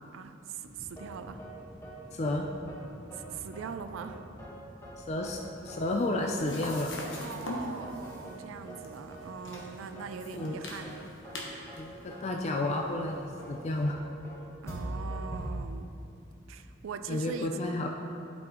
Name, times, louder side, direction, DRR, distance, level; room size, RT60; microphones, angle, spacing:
voice 1, 0.1-1.4 3.1-4.2 7.2-10.9 14.6-15.9 16.5-17.5, right 6 dB, 80° right, 9 dB, 0.4 m, -41 dB
sound 1, 0.6-17.3, equal, 55° right, 1.4 m, -53 dB
sound 2, 1.0-1.1 1.4-1.5 1.8-1.9 2.2-2.4 2.7-2.8 3.1-3.2 3.5-3.6 4.0-4.1 4.4-4.5 4.8-4.9 5.2-5.4 5.7-5.8 6.1-6.2 6.5-6.6 7.0-7.1 7.4-7.5 7.8-8.4 8.7-8.8 9.1-9.2 9.5-9.6 10.0-10.1 10.4-10.5 10.8-10.9 11.2-11.4 11.7-11.8 12.1-12.2 12.5-12.6 13.0-13.1 13.4-13.5 13.8-13.9 14.2-14.4 14.7-15.5, right 1 dB, 15° left, 1.3 m, -42 dB
voice 2, 2.1-2.5 5.0-5.4 5.6-6.9 10.3-10.6 11.8-14.0 17.1-17.9, left 2 dB, 35° left, 1 dB, 0.4 m, -31 dB
sound 3, 5.6-13.8, left 1 dB, 65° left, 1.2 m, -44 dB
11.5 x 5.3 x 3.0 m, 2.7 s
head